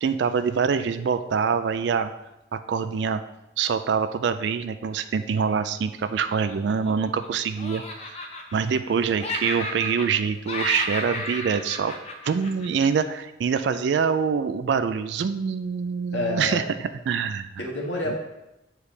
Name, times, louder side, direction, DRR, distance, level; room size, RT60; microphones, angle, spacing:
voice 1, 0.0-2.1 2.5-3.2 3.6-7.8 8.1-8.2 8.5-11.9 12.2-16.6 17.1-17.5 18.1-18.2, right 6 dB, 65° right, 10 dB, 0.3 m, -25 dB
Laughter, 6.0-7.3 7.6-8.9 9.2-10.2 10.5-13.0, left 2 dB, 35° left, 0.7 m, -33 dB
voice 2, 16.1-16.7 17.6-18.2, left 1 dB, 70° left, -2 dB, 1.5 m, -28 dB
8.4 x 4.8 x 3.3 m, 0.93 s
head